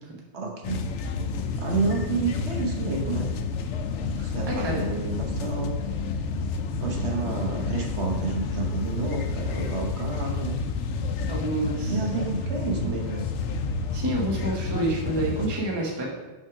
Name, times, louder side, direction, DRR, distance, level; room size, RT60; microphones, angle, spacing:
voice 1, 0.3-0.8 1.6-3.3 4.2-5.7 6.8-10.6 11.8-13.2, right 4 dB, 75° right, 0 dB, 1.3 m, -30 dB
sound 1, 0.6-15.5, left 4 dB, 85° left, 0.9 m, -30 dB
voice 2, 4.5-4.8 11.3-11.9 13.9-16.0, right 1 dB, 25° right, -2 dB, 1.0 m, -28 dB
6.2 x 3.6 x 5.8 m, 1.1 s
omnidirectional pair, 1.2 m